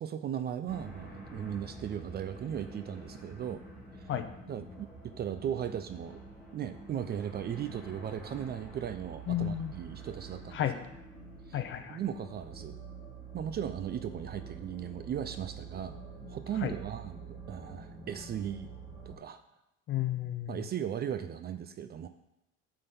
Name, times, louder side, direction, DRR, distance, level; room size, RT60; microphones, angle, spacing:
voice 1, 0.0-3.6 4.0-4.1 4.5-6.2 6.5-10.7 11.5-11.6 11.9-12.8 13.3-16.0 16.3-18.7 19.1-19.4 20.5-22.1, right 9 dB, 35° right, 10 dB, 0.4 m, -37 dB
sound 1, 0.7-19.1, right 4 dB, 5° right, 3.7 m, -47 dB
voice 2, 9.3-9.7 10.5-10.8 11.5-12.0 16.6-16.7 19.9-20.6, left 11 dB, 40° left, 9 dB, 0.8 m, -32 dB
9.6 x 3.8 x 6.8 m, 0.88 s
cardioid pair, 145°, 30 cm